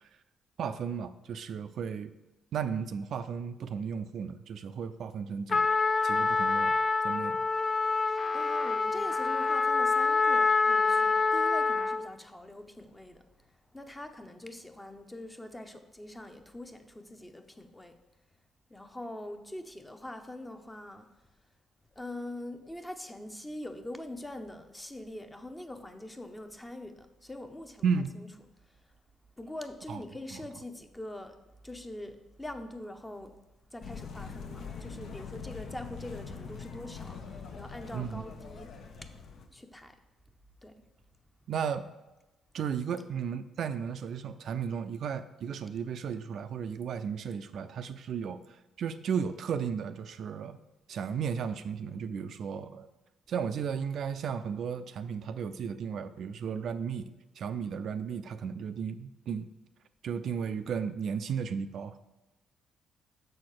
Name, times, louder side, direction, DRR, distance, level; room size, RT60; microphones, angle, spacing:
voice 1, 0.6-2.1 2.5-5.7 6.0-6.7 7.0-7.4 27.8-28.1 29.9-30.0 37.9-38.2 41.5-41.9 42.5-50.6 50.9-52.9 53.3-57.1 57.4-59.5 60.0-62.0, right 7 dB, 65° right, 10 dB, 0.4 m, -34 dB
Trumpet, 5.5-12.1, left 4 dB, 40° left, 0.4 m, -26 dB
voice 2, 8.3-18.0 18.7-21.1 21.9-27.9 28.1-28.3 28.6-28.9 29.4-31.4 31.6-33.3 33.7-38.7 39.0-39.1 39.5-40.0 40.6-40.8, left 1 dB, 10° left, 6 dB, 0.7 m, -43 dB
sound 1, 33.8-39.5, left 5 dB, 70° left, 0.8 m, -43 dB
6.5 x 4.3 x 6.5 m, 1.0 s
cardioid pair, 90°, 0 cm